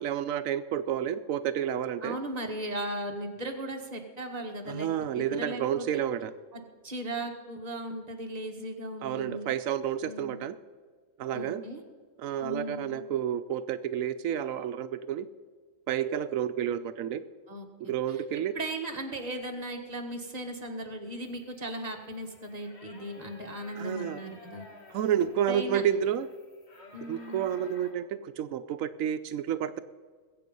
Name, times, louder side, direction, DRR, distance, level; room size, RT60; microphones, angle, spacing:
voice 1, 0.0-2.2 4.7-6.3 9.0-10.6 11.2-11.6 12.2-15.3 15.9-17.2 17.8-18.5 23.8-24.2 24.9-26.3 27.1-29.8, right 9 dB, 90° right, 11 dB, 1.0 m, -30 dB
voice 2, 2.0-4.9 5.1-6.0 6.5-9.5 10.0-10.4 11.3-11.8 12.4-13.0 17.5-18.2 18.5-24.7 25.5-25.8 26.9-27.5, right 1 dB, 30° right, 2 dB, 1.7 m, -37 dB
sound 1, 21.2-27.9, left 2 dB, 55° left, 2.1 m, -53 dB
21.0 x 8.3 x 5.4 m, 1.5 s
omnidirectional pair, 1.4 m